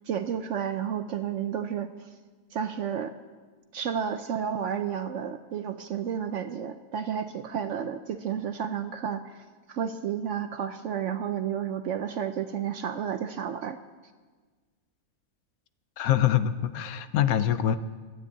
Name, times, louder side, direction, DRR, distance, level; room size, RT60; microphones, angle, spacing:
voice 1, 0.1-2.1 2.5-3.1 3.7-13.8, right 8 dB, 65° right, 9 dB, 0.8 m, -31 dB
voice 2, 16.0-17.8, left 10 dB, 70° left, 12 dB, 1.0 m, -24 dB
12.5 x 9.9 x 8.3 m, 1.4 s
omnidirectional pair, 1.7 m